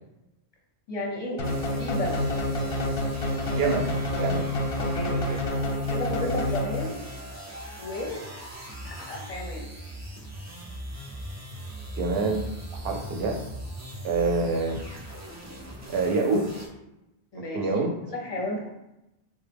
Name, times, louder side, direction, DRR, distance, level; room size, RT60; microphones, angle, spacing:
voice 1, 0.9-1.5 1.8-2.2 4.8-5.2 5.9-7.0 7.8-8.2 8.8-9.7 17.3-17.7 18.1-18.7, left 1 dB, 40° left, -1 dB, 0.7 m, -33 dB
sound 1, 1.4-7.1, left 1 dB, 60° left, 0.3 m, -28 dB
sound 2, 1.4-16.7, right 1 dB, 25° right, 0.4 m, -40 dB
voice 2, 3.5-4.5 5.3-5.4 12.0-12.5 12.8-13.4 14.0-14.8 15.9-16.6 17.5-18.0, right 3 dB, 65° right, 2 dB, 0.8 m, -26 dB
4.1 x 2.1 x 3.3 m, 0.91 s
omnidirectional pair, 1.1 m